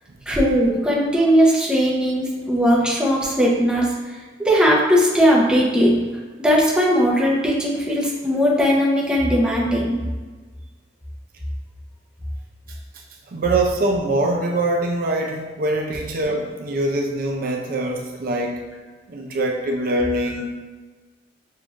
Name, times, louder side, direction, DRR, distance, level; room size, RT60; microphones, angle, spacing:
voice 1, 0.3-6.0 6.4-10.0, equal, 5° right, -4 dB, 0.6 m, -18 dB
voice 2, 13.3-18.6 19.1-20.5, right 2 dB, 50° right, 1 dB, 0.4 m, -23 dB
6.6 x 2.4 x 2.4 m, 1.3 s
head